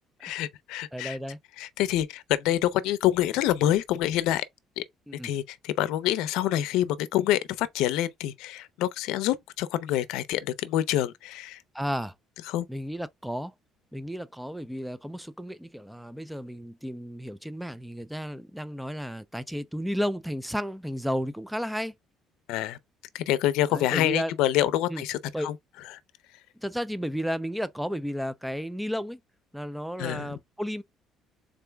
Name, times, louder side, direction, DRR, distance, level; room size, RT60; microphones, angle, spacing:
voice 1, 0.2-1.2 1.6-4.4 4.8-4.9 5.2-11.6 12.5-12.7 22.5-22.8 23.1-25.5 30.0-30.4, left 13 dB, 90° left, 0.5 m, -26 dB
voice 2, 0.9-1.4 5.1-5.3 11.7-12.1 12.7-13.5 13.9-21.9 23.7-24.3 24.9-25.0 25.3-25.5 26.6-29.2 29.5-30.8, equal, ahead, 0.3 m, -33 dB
3.8 x 3.3 x 3.3 m
cardioid pair, 160°, 0 cm